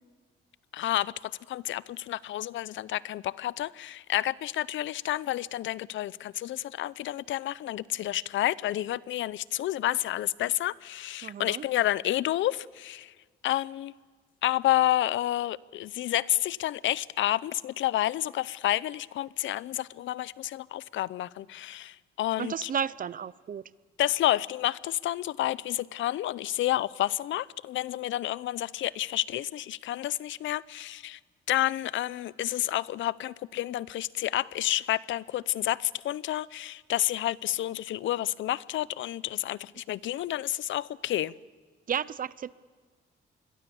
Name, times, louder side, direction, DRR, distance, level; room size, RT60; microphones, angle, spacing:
voice 1, 0.7-1.1 1.5-13.1 13.4-13.9 14.4-22.7 24.0-31.2 31.5-41.3, left 14 dB, 75° left, 0.6 m, -30 dB
voice 2, 11.2-11.6 22.4-23.6 41.9-42.5, right 8 dB, 45° right, 0.7 m, -32 dB
27.5 x 22.0 x 7.1 m
cardioid pair, 90°, 20 cm